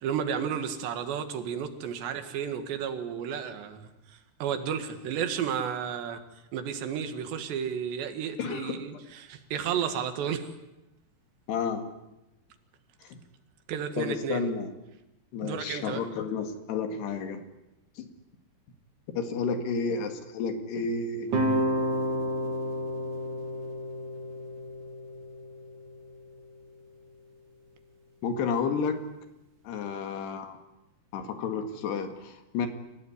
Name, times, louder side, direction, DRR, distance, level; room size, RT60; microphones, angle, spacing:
voice 1, 0.0-6.2 6.5-10.5 13.7-14.5 15.4-16.1, right 8 dB, 85° right, 8 dB, 4.0 m, -32 dB
voice 2, 8.4-8.9 11.5-11.8 13.1-13.2 14.0-14.7 15.3-17.4 18.0-18.1 19.2-21.3 28.2-29.1 29.7-30.6 31.1-32.7, left 5 dB, 75° left, 7 dB, 4.1 m, -31 dB
sound 1, 21.3-26.4, equal, 50° right, 3.6 m, -31 dB
28.0 x 16.5 x 9.8 m, 0.94 s
omnidirectional pair, 4.8 m